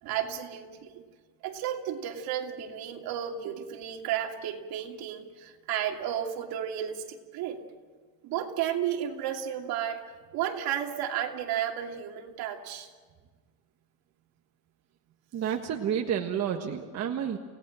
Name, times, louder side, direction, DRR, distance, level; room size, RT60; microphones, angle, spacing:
voice 1, 0.0-1.0 1.4-7.6 8.2-10.0 10.3-12.9, right 10 dB, 70° right, 2 dB, 2.8 m, -33 dB
voice 2, 15.3-17.4, right 8 dB, 40° right, 3 dB, 1.5 m, -30 dB
29.5 x 17.5 x 7.7 m, 1.5 s
cardioid pair, 150°, 38 cm